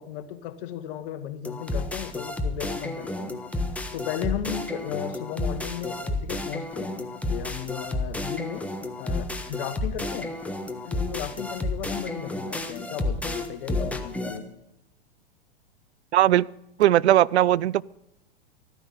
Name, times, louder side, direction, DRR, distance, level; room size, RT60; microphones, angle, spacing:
voice 1, 0.0-3.4 3.9-8.7 9.0-10.4 10.9-14.5, left 11 dB, 55° left, 1.4 m, -35 dB
sound 1, 1.4-14.4, left 2 dB, 5° left, 1.3 m, -31 dB
voice 2, 16.1-16.5 16.8-17.8, right 13 dB, 80° right, 0.5 m, -19 dB
14.0 x 9.9 x 6.9 m
hypercardioid pair, 110°, 33 cm